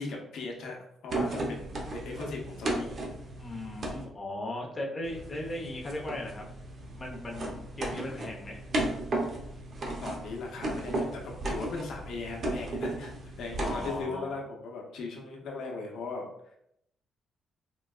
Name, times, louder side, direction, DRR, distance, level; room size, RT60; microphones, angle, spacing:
voice 1, 0.0-2.9 10.0-13.1 13.4-16.2, left 3 dB, 75° left, -1 dB, 0.7 m, -38 dB
sound 1, 1.1-4.0 5.0-14.0, right 1 dB, 50° right, 0.7 m, -35 dB
voice 2, 3.4-6.4 6.9-8.6 13.6-14.3, left 1 dB, 30° left, -1 dB, 0.8 m, -37 dB
3.9 x 2.2 x 2.3 m, 0.76 s
cardioid pair, 90°, 0 cm